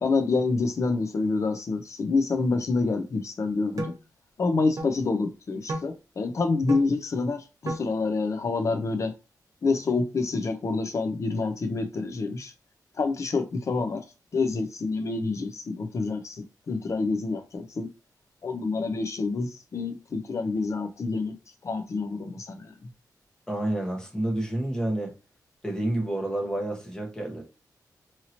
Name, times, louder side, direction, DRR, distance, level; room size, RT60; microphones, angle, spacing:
voice 1, 0.0-3.9 4.4-9.1 9.6-12.5 13.0-14.0 14.3-17.9 18.4-21.3 21.6-22.7, left 3 dB, 45° left, 0.6 m, -27 dB
sound 1, 3.8-4.0 4.8-4.9 5.7-5.9 6.7-6.9 7.7-7.9, right 2 dB, 55° right, 1.0 m, -32 dB
voice 2, 23.5-25.1 25.6-27.4, right 1 dB, 10° left, 1.0 m, -29 dB
2.8 x 2.8 x 2.8 m
wide cardioid pair, 120°, 7 cm